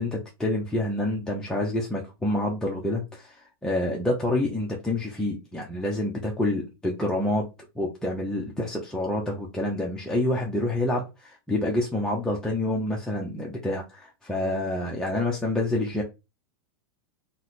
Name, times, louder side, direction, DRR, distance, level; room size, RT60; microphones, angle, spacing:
voice 1, 0.0-7.5 7.8-16.0, left 1 dB, 5° left, 0.6 m, -27 dB
2.8 x 2.2 x 3.9 m
hypercardioid pair, 125°, 12 cm